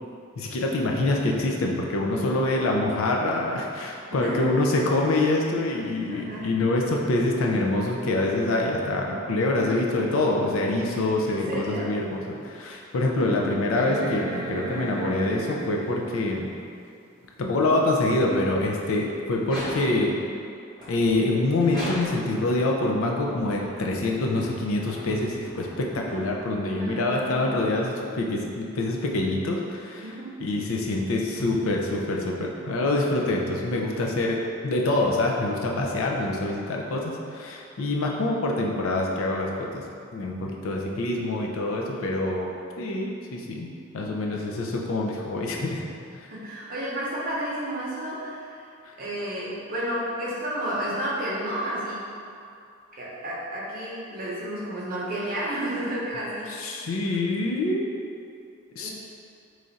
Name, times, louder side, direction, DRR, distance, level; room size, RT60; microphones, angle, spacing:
voice 1, 0.4-16.5 17.4-20.1 20.9-30.1 30.4-39.8 40.1-42.5 42.8-43.7 43.9-45.8 56.5-57.9 58.7-58.9, left 2 dB, 75° left, 0 dB, 0.4 m, -25 dB
voice 2, 4.1-4.5 6.1-6.5 10.8-11.9 26.7-27.7 30.0-30.4 44.3-44.5 46.3-48.6 49.0-52.0 52.9-56.9 58.8-58.9, right 1 dB, 40° right, -6 dB, 0.7 m, -32 dB
sound 1, 11.6-11.7 12.3-12.4 13.8-16.3 18.0-18.1, right 2 dB, 85° right, 0.7 m, -33 dB
sound 2, 19.4-20.2 20.8-22.4 23.1-26.7, equal, 20° left, 0.8 m, -39 dB
3.2 x 2.4 x 3.9 m, 2.4 s
head